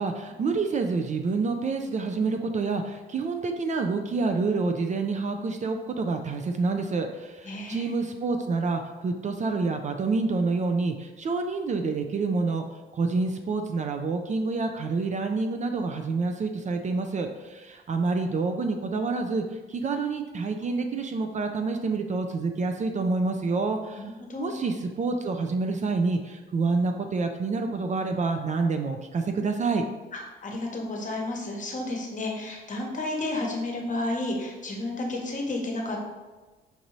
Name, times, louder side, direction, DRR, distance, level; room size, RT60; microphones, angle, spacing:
voice 1, 0.0-12.6 12.9-24.1 24.4-29.8, right 4 dB, 40° right, 5 dB, 0.4 m, -28 dB
voice 2, 7.4-7.9 24.0-24.6 30.1-36.0, left 2 dB, 40° left, 0 dB, 1.0 m, -32 dB
5.2 x 2.6 x 3.0 m, 1.2 s
cardioid pair, 90°, 20 cm